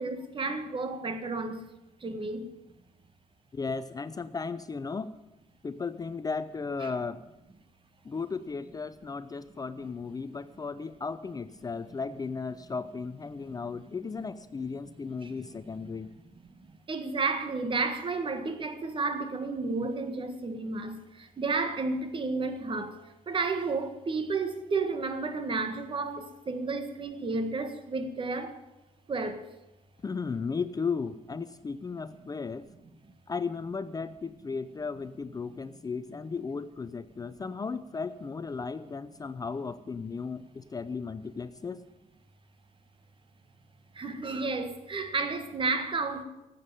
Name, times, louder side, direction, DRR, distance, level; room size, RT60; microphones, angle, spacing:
voice 1, 0.0-1.6 2.0-2.5 6.8-6.9 15.2-15.3 15.9-16.0 16.6-28.6 29.1-29.4 43.9-46.2, right 3 dB, 35° right, 1.6 m, -32 dB
voice 2, 3.5-5.1 5.6-7.2 8.0-16.1 30.0-32.7 33.3-41.9, left 5 dB, 25° left, 0.5 m, -35 dB
13.0 x 8.3 x 9.1 m
cardioid pair, 95°, 14 cm